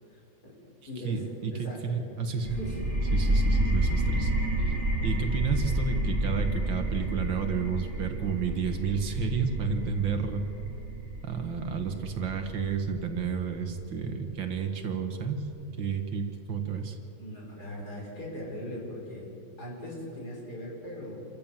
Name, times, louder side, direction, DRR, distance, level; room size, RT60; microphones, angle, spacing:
voice 1, 0.1-0.5 0.9-2.0 2.5-2.8 17.2-19.3 19.6-21.2, left 1 dB, 50° left, -3 dB, 6.3 m, -40 dB
voice 2, 1.0-2.6 3.1-4.7 5.0-10.4 11.2-15.5 15.8-17.0, right 6 dB, 75° right, 6 dB, 2.3 m, -31 dB
sound 1, 2.4-13.9, right 1 dB, 35° right, 2.9 m, -30 dB
28.0 x 14.5 x 7.5 m, 3.0 s
omnidirectional pair, 2.1 m